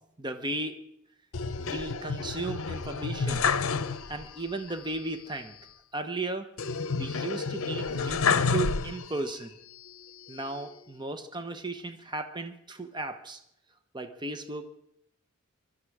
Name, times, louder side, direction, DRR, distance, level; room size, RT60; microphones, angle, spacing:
voice 1, 0.2-0.8 1.6-3.5 4.1-5.6 5.9-6.5 6.9-9.6 10.3-13.4 13.9-14.7, right 2 dB, 20° right, 8 dB, 0.9 m, -35 dB
sound 1, 1.3-4.4 4.7-4.8 6.6-9.3 9.9-10.7, left 5 dB, 70° left, 0.7 m, -30 dB
22.5 x 12.5 x 4.9 m, 0.76 s
head